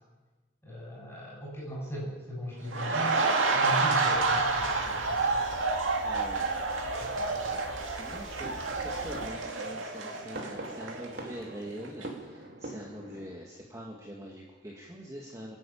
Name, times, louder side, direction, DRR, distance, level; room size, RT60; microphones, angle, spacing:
voice 1, 0.6-3.2 3.5-5.4 7.0-7.7, equal, 10° left, -4 dB, 7.5 m, -39 dB
sound 1, 2.7-11.5 11.8-12.1, right 3 dB, 85° right, 2.3 m, -29 dB
sound 2, 4.1-9.3, equal, 80° left, 3.0 m, -48 dB
voice 2, 6.0-6.5 7.8-15.6, equal, 15° right, -2 dB, 2.0 m, -44 dB
sound 3, 8.4-13.4, right 1 dB, 55° right, 2.8 m, -44 dB
28.0 x 10.5 x 8.7 m, 1.2 s
head